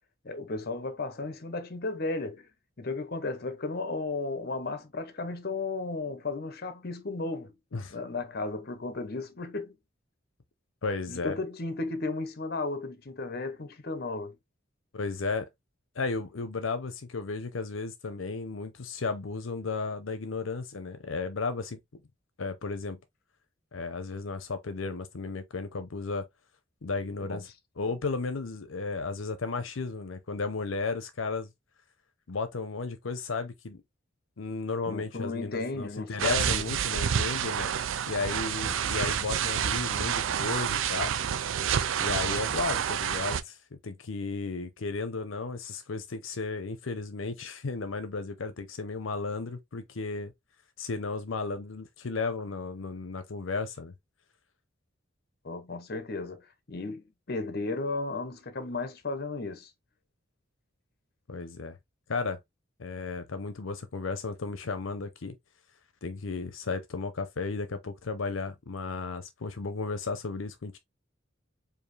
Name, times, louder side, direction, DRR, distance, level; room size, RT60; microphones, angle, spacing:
voice 1, 0.2-2.5 2.8-7.5 7.9-9.8 11.1-14.3 27.2-27.5 34.8-36.7 55.4-59.7, left 3 dB, 50° left, 0.8 m, -34 dB
voice 2, 10.8-11.4 14.9-15.5 15.9-22.0 22.4-23.0 23.7-26.3 26.8-27.5 27.8-31.5 32.3-33.8 34.4-37.7 38.1-41.1 42.0-43.6 43.8-50.3 50.8-53.9 61.3-61.8 62.1-62.4 62.8-65.4 66.0-70.8, left 4 dB, 80° left, 0.7 m, -34 dB
sound 1, 36.2-43.4, right 8 dB, 80° right, 0.4 m, -29 dB
4.8 x 2.7 x 3.2 m
head